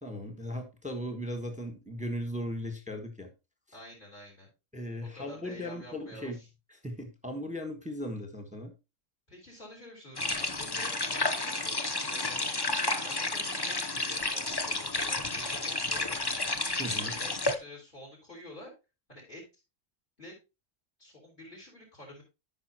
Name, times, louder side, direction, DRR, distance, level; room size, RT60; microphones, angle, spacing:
voice 1, 0.0-3.3 4.7-6.4 6.8-8.7 16.8-17.1, equal, 5° right, 5 dB, 1.3 m, -37 dB
voice 2, 3.7-4.5 5.0-6.5 9.3-12.5 13.0-16.2 16.9-18.7 19.1-19.4 20.2-20.3 21.0-22.2, left 1 dB, 40° left, -2 dB, 4.6 m, -49 dB
sound 1, 10.2-17.6, left 2 dB, 25° left, 0.7 m, -31 dB
13.5 x 5.6 x 2.9 m, 0.26 s
omnidirectional pair, 1.3 m